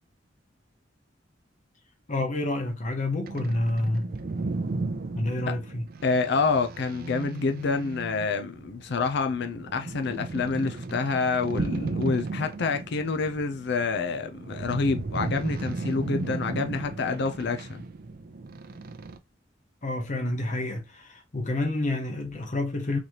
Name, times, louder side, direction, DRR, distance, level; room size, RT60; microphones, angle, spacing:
voice 1, 2.1-4.0 5.1-5.8 19.8-23.0, left 2 dB, 40° left, 0.9 m, -28 dB
sound 1, 3.2-19.2, right 3 dB, 50° right, 0.5 m, -35 dB
voice 2, 6.0-17.8, left 4 dB, 65° left, 0.5 m, -27 dB
4.0 x 3.2 x 2.8 m
head